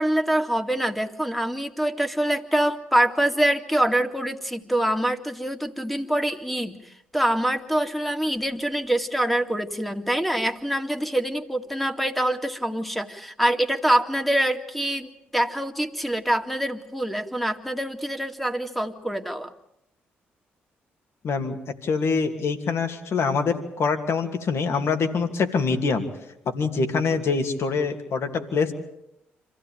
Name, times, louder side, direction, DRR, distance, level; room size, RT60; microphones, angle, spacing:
voice 1, 0.0-19.5, right 1 dB, ahead, 7 dB, 2.2 m, -25 dB
voice 2, 21.2-26.0 26.5-28.7, left 5 dB, 60° left, 6 dB, 2.7 m, -25 dB
26.5 x 15.5 x 9.0 m, 0.80 s
hypercardioid pair, 45°, 5 cm